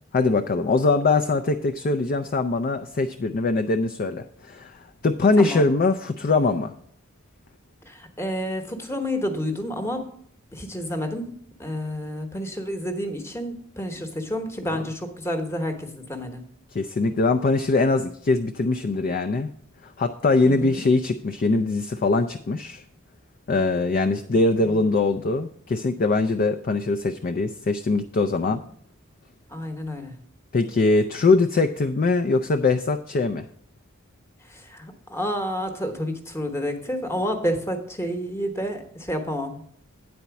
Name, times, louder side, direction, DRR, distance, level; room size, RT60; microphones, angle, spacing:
voice 1, 0.1-6.7 16.7-19.5 19.8-22.8 23.5-28.6 30.5-33.5, left 3 dB, 40° left, 7 dB, 0.4 m, -22 dB
voice 2, 7.9-10.1 10.5-11.3 11.6-16.4 20.4-20.8 24.3-24.4 29.5-30.1 34.4-39.7, equal, 10° left, 6 dB, 1.0 m, -30 dB
9.3 x 4.3 x 6.9 m, 0.63 s
head